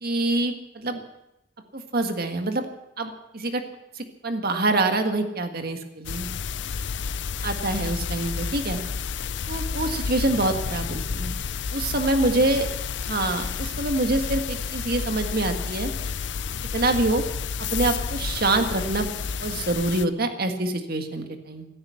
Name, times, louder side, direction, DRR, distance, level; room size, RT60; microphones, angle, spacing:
voice 1, 0.0-1.0 1.7-2.7 3.0-3.6 4.0-6.3 7.4-8.8 9.5-11.3 11.7-12.7 13.1-15.9 16.7-17.2 17.7-19.1 19.4-21.7, right 2 dB, 55° right, 6 dB, 1.7 m, -25 dB
sound 1, 6.0-20.0, left 6 dB, 65° left, 0.5 m, -30 dB
16.5 x 14.0 x 5.8 m, 0.89 s
head